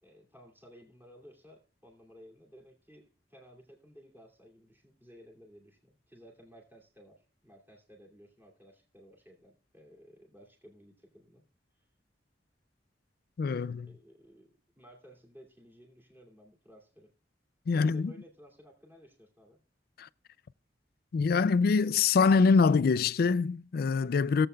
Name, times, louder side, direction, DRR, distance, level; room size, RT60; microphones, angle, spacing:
voice 1, 0.0-11.4 11.7-11.9 13.9-17.1 17.7-19.6, equal, 10° right, 2.6 m, -56 dB
voice 2, 13.4-13.9 17.7-18.1 20.0-20.1 21.1-24.5, left 5 dB, 55° left, 0.4 m, -24 dB
17.5 x 7.8 x 2.2 m
head